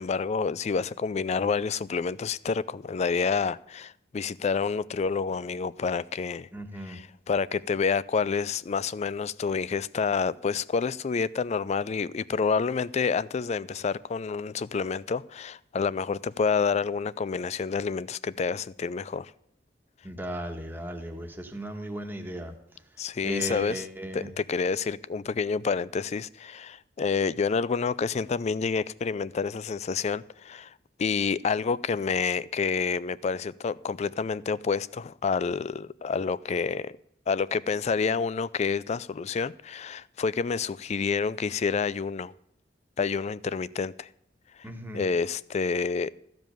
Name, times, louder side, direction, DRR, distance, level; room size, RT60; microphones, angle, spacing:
voice 1, 0.0-6.5 6.9-19.3 23.0-23.8 24.1-30.7 31.0-37.0 37.3-42.3 43.0-44.1 44.6-44.7 44.9-46.1, left 5 dB, 40° left, 0.4 m, -28 dB
voice 2, 6.5-7.0 20.0-22.5 23.2-24.3 44.6-45.0, right 1 dB, 10° right, 1.4 m, -36 dB
14.0 x 5.2 x 9.1 m
head